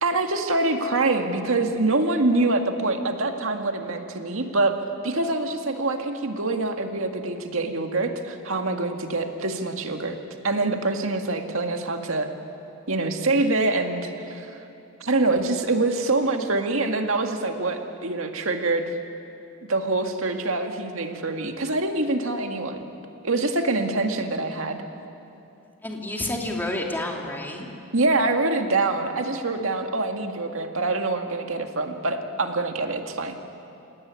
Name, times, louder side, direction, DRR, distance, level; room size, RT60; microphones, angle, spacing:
voice 1, 0.0-4.7 5.0-10.2 10.4-12.3 12.9-14.5 15.0-18.9 19.7-22.8 23.2-24.8 27.9-33.3, right 2 dB, 75° right, 4 dB, 2.0 m, -25 dB
voice 2, 25.8-27.7, left 1 dB, 10° left, 0 dB, 2.8 m, -29 dB
28.5 x 17.5 x 9.7 m, 2.8 s
head